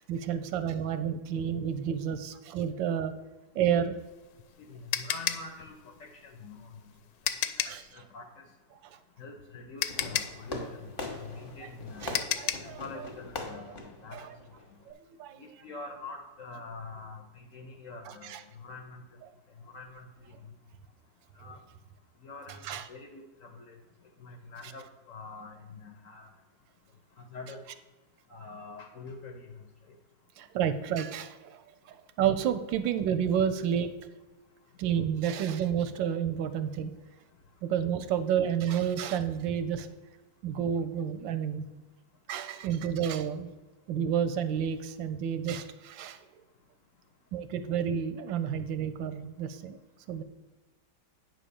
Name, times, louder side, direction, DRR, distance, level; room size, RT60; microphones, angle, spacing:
voice 1, 0.0-3.1 3.5-3.9 7.7-7.9 12.0-12.8 14.1-14.3 14.9-15.0 15.2-15.4 18.2-18.4 22.7-22.8 30.4-31.6 31.9-33.9 34.8-36.9 37.6-39.9 40.4-41.6 42.3-43.5 43.9-46.2 47.3-49.8 50.1-50.2, right 8 dB, 85° right, 10 dB, 1.3 m, -30 dB
sound 1, 4.0-7.9 9.3-9.4 9.8-12.8, left 11 dB, 75° left, 1.2 m, -33 dB
voice 2, 4.7-5.7 6.0-6.9 7.4-7.7 7.9-8.4 9.2-10.9 11.2-12.1 12.6-14.3 15.4-19.0 19.7-20.5 21.4-21.6 22.2-23.8 24.2-26.3 27.3-27.6 28.3-29.6, left 3 dB, 55° left, 4 dB, 1.0 m, -45 dB
Fireworks, 9.9-14.9, left 2 dB, 35° left, 1.1 m, -41 dB
9.3 x 3.8 x 6.8 m, 1.1 s
omnidirectional pair, 2.1 m